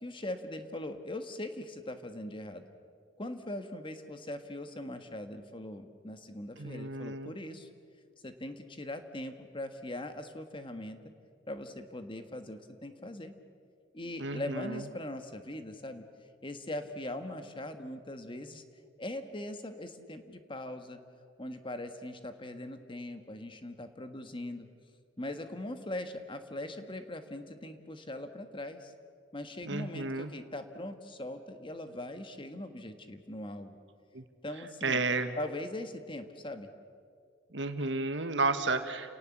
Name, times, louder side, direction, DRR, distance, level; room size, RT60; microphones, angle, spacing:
voice 1, 0.0-2.6 3.2-7.7 8.2-11.0 11.5-13.3 13.9-16.0 16.4-18.6 19.0-21.0 21.4-24.7 25.2-28.9 29.3-33.8 34.4-35.0 35.4-36.7, left 1 dB, 30° left, 7 dB, 1.5 m, -41 dB
voice 2, 6.6-7.3 14.2-14.8 29.6-30.3 34.1-34.2 34.8-35.4 37.5-39.1, right 3 dB, 75° right, 8 dB, 1.6 m, -32 dB
30.0 x 18.5 x 7.4 m, 2.2 s
head